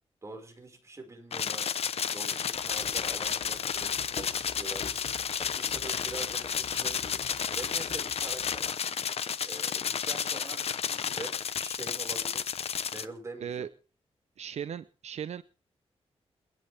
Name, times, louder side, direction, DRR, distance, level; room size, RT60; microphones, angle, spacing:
voice 1, 0.2-1.7 2.1-4.8 5.4-7.2 7.5-8.7 9.4-12.4 12.9-13.7, right 2 dB, 25° right, 3 dB, 5.3 m, -44 dB
sound 1, 1.3-13.0, left 7 dB, 65° left, 0.9 m, -32 dB
sound 2, 2.5-8.7, left 6 dB, 80° left, 3.4 m, -46 dB
voice 2, 14.4-15.4, right 8 dB, 80° right, 14 dB, 0.7 m, -37 dB
29.0 x 11.0 x 3.5 m, 0.38 s
wide cardioid pair, 135°, 11 cm